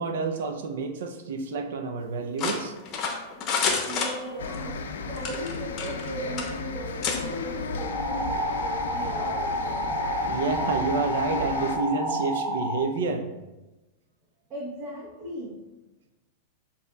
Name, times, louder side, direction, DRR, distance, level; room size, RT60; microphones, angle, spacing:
voice 1, 0.0-2.7 10.3-13.3, right 4 dB, 75° right, 5 dB, 0.5 m, -29 dB
sound 1, 2.4-4.6 5.2-6.1 6.4-6.5 7.0-7.2, left 5 dB, 40° left, 0.7 m, -28 dB
voice 2, 3.8-9.9 14.5-15.6, right 1 dB, 35° right, -6 dB, 0.9 m, -38 dB
sound 2, 4.4-11.8, left 4 dB, 90° left, 0.4 m, -34 dB
sound 3, 7.8-12.8, equal, 5° left, 0.6 m, -29 dB
7.2 x 2.8 x 2.3 m, 1.1 s
hypercardioid pair, 125°, 0 cm